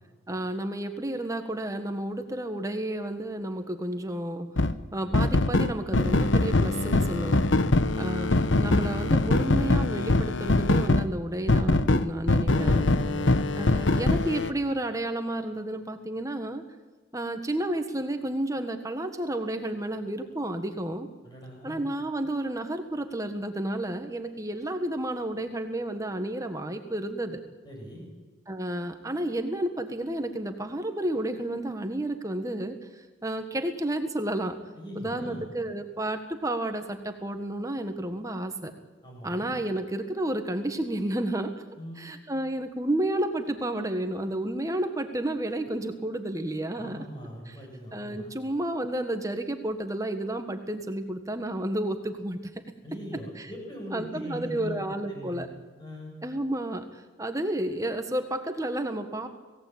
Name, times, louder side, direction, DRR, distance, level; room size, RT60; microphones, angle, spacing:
voice 1, 0.3-4.5 4.9-7.4 8.0-12.9 13.6-16.6 17.1-21.1 21.6-27.4 28.5-32.8 33.2-34.6 34.9-38.7 39.2-41.5 42.0-47.0 47.5-47.6 47.9-52.4 53.4-53.5 53.9-55.5 56.2-56.8 57.2-59.3, right 1 dB, 15° right, 7 dB, 1.4 m, -31 dB
sound 1, 4.6-4.7 5.1-11.1 11.5-14.5, left 2 dB, 75° left, 1.0 m, -23 dB
voice 2, 7.6-8.0 13.0-13.4 21.2-21.8 27.6-28.0 34.7-35.5 39.0-39.5 41.8-42.0 46.7-48.3 52.8-54.8 55.1-55.5 55.8-56.1, equal, 20° left, -1 dB, 7.9 m, -40 dB
27.0 x 17.5 x 8.7 m, 1.3 s
head